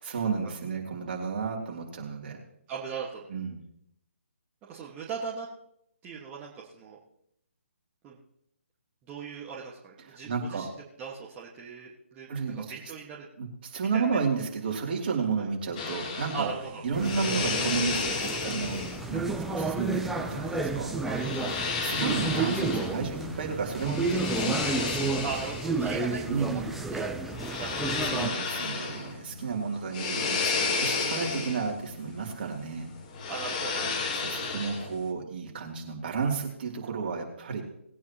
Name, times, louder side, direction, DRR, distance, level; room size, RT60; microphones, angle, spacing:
voice 1, 0.0-2.4 3.3-3.6 10.1-10.7 12.3-12.6 13.4-16.5 16.8-18.8 19.1-20.9 21.4-25.1 26.3-26.7 28.0-32.9 34.1-37.6, right 5 dB, 45° right, 0 dB, 3.0 m, -32 dB
voice 2, 2.7-3.3 4.6-5.5 6.0-7.0 8.0-8.2 9.1-10.7 11.0-12.3 12.5-13.3 13.9-14.2 15.4-15.5 16.3-16.8 21.0-21.3 25.2-28.1 31.2-31.5 33.3-33.9, right 6 dB, 20° right, -5 dB, 1.6 m, -39 dB
sound 1, 15.8-35.1, left 4 dB, 30° left, 1.6 m, -33 dB
sound 2, 16.9-28.3, right 3 dB, 5° right, 0.6 m, -32 dB
19.5 x 9.4 x 3.0 m, 0.74 s
figure-of-eight pair, 145°, 7 cm